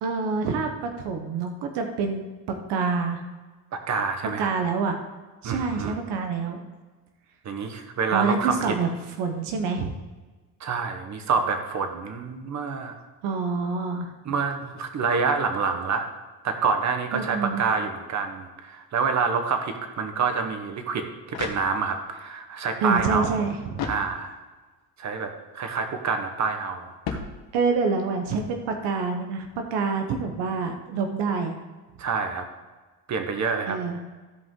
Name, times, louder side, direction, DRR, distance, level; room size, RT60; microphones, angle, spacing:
voice 1, 0.0-3.2 4.4-5.0 5.4-6.7 8.1-8.9 9.2-9.9 13.2-14.1 17.1-17.6 22.8-23.9 27.5-31.6 33.7-34.0, right 4 dB, 85° right, 4 dB, 1.1 m, -27 dB
voice 2, 3.7-4.5 5.4-6.0 7.4-8.6 10.6-12.9 14.2-16.1 16.4-23.4 23.8-24.4 25.0-27.2 32.0-32.4 33.1-33.8, right 5 dB, 45° right, 6 dB, 1.3 m, -27 dB
sound 1, 21.2-22.2 23.7-24.6 27.0-27.9, left 6 dB, 70° left, 1.3 m, -36 dB
14.5 x 5.3 x 3.8 m, 1.3 s
cardioid pair, 120°, 40 cm